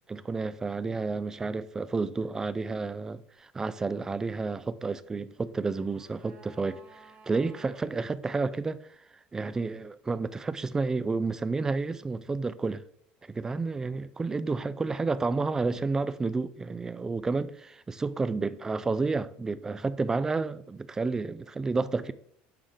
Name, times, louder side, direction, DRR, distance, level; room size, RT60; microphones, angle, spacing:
voice 1, 0.1-7.0 7.3-8.8 9.3-12.8 13.3-22.1, right 4 dB, 15° right, 0.3 m, -30 dB
sound 1, 5.3-7.9 8.2-8.3, right 4 dB, 30° right, 1.0 m, -55 dB
8.8 x 3.3 x 3.7 m
cardioid pair, 135°, 4 cm